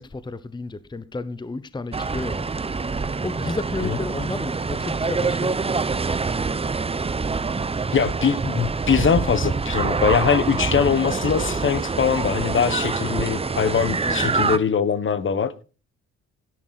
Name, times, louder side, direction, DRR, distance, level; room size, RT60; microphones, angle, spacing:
voice 1, 0.0-2.5 3.2-6.0 14.0-14.2, left 3 dB, 15° left, 0.9 m, -32 dB
sound 1, 1.9-14.6, right 4 dB, 20° right, 0.8 m, -25 dB
voice 2, 7.9-15.5, left 7 dB, 40° left, 1.2 m, -22 dB
13.0 x 11.0 x 4.1 m
cardioid pair, 90°, 30 cm